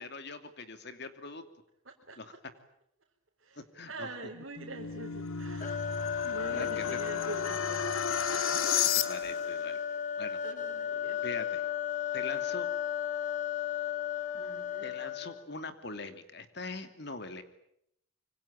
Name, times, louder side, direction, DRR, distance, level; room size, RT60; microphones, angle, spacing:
voice 1, 0.0-1.4 2.2-2.3 3.6-4.1 6.5-7.0 8.9-9.8 10.2-10.4 11.2-11.7 12.1-12.7 14.8-17.4, left 3 dB, 55° left, 8 dB, 2.7 m, -42 dB
voice 2, 1.9-2.2 3.4-3.6 3.9-5.8 6.2-7.9 8.2-8.5 10.4-11.2 14.3-14.9, right 2 dB, 65° right, -2 dB, 3.9 m, -44 dB
sound 1, 4.4-9.5, left 7 dB, 80° left, 1.4 m, -33 dB
sound 2, 5.6-15.5, left 9 dB, 35° left, 1.9 m, -34 dB
25.5 x 25.0 x 8.8 m, 0.73 s
head